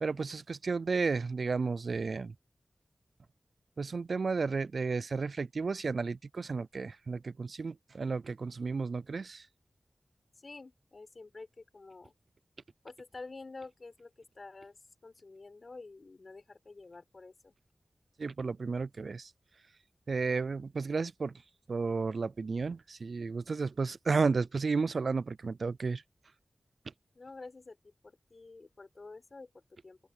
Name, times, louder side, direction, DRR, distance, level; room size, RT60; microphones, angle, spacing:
voice 1, 0.0-2.3 3.8-9.4 18.2-19.3 20.1-21.3 21.7-26.0, right 4 dB, 75° right, 0.4 m, -32 dB
voice 2, 10.3-12.1 12.8-14.8 15.0-17.5 27.1-30.0, left 3 dB, 60° left, 4.3 m, -49 dB
cardioid pair, 45°, 0 cm